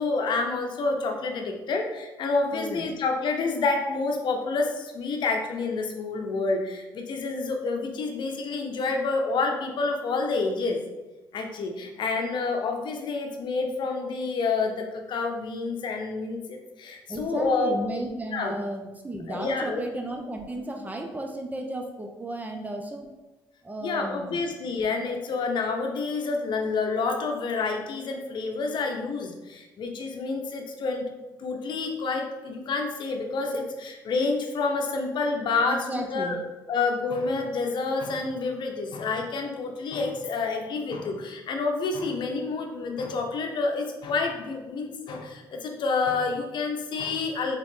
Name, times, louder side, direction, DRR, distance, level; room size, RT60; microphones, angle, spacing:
voice 1, 0.0-10.8 11.3-17.8 18.3-18.5 19.3-19.8 23.8-31.0 31.4-36.4 36.7-47.6, left 4 dB, 65° left, 3 dB, 0.7 m, -28 dB
voice 2, 2.5-2.9 17.1-23.1 23.6-24.4 35.7-36.4, right 1 dB, 20° right, 3 dB, 0.8 m, -34 dB
3.7 x 3.7 x 3.7 m, 1.1 s
supercardioid pair, 65°, 8 cm